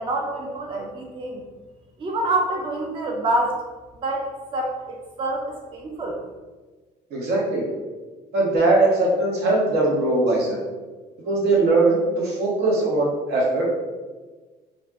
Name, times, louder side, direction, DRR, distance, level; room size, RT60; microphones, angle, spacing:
voice 1, 0.0-1.4 2.0-3.6 4.0-6.2, right 2 dB, 30° right, 0 dB, 0.4 m, -26 dB
voice 2, 7.1-7.6 8.3-10.6 11.2-13.6, right 2 dB, 75° right, -3 dB, 0.9 m, -20 dB
2.4 x 2.0 x 3.4 m, 1.3 s
cardioid pair, 110°, 17 cm